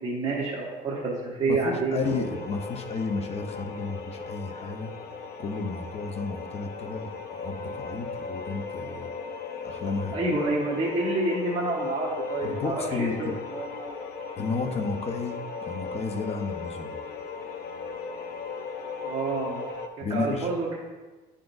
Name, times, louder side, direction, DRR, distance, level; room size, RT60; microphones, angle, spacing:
voice 1, 0.0-2.2 10.1-13.9 19.0-19.6 20.1-20.8, right 3 dB, 30° right, -7 dB, 1.3 m, -28 dB
voice 2, 1.5-4.9 5.4-9.1 9.6-10.1 12.4-13.3 14.4-16.9 20.0-20.5, left 4 dB, 40° left, 5 dB, 0.7 m, -32 dB
sound 1, 2.0-19.9, left 4 dB, 70° left, 0.6 m, -37 dB
9.9 x 3.8 x 2.6 m, 1.3 s
cardioid pair, 110°, 17 cm